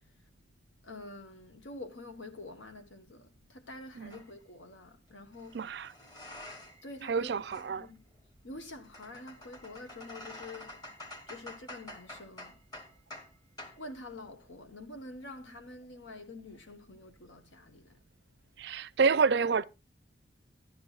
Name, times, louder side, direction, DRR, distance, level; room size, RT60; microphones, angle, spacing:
voice 1, 0.8-5.6 6.8-8.0 8.4-10.8 11.3-12.6 13.8-18.0, left 2 dB, 80° left, 1.2 m, -47 dB
sound 1, 4.1-4.3 5.3-6.9 7.2-13.3 13.6-13.8, left 1 dB, 20° left, 1.3 m, -48 dB
voice 2, 5.5-5.9 7.0-7.9 18.6-19.6, right 5 dB, 60° right, 0.4 m, -28 dB
12.5 x 11.5 x 2.4 m
head